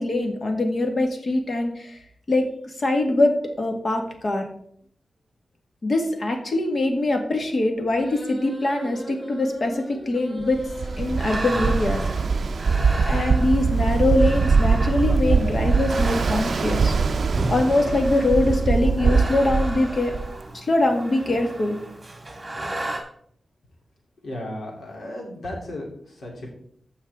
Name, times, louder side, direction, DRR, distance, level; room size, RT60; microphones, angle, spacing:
voice 1, 0.0-2.0 2.3-2.5 2.8-4.5 5.8-10.6 11.0-12.0 13.1-16.9 17.5-20.1 20.5-21.8, left 2 dB, 45° left, 3 dB, 1.7 m, -23 dB
sound 1, 7.9-11.0, right 1 dB, 25° left, 2.9 m, -37 dB
Ocean, 10.5-20.4, right 4 dB, 60° right, 0.5 m, -22 dB
sound 2, 11.0-23.0, right 1 dB, 20° right, 2.0 m, -34 dB
voice 2, 24.2-26.5, left 1 dB, 80° left, -1 dB, 3.2 m, -35 dB
15.0 x 5.6 x 3.6 m, 0.64 s
wide cardioid pair, 155°, 0 cm